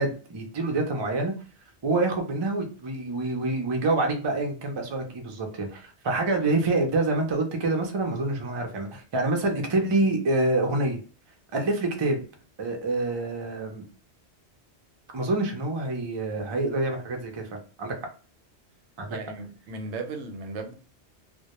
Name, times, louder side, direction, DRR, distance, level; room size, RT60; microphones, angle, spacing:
voice 1, 0.0-1.3 1.8-11.0 11.5-12.2 12.6-13.8 15.1-17.4 17.8-18.0 19.0-19.2, right 2 dB, 45° right, 0.3 m, -26 dB
voice 2, 19.1-20.8, right 3 dB, 80° right, 0.9 m, -36 dB
2.1 x 2.1 x 2.8 m
omnidirectional pair, 1.2 m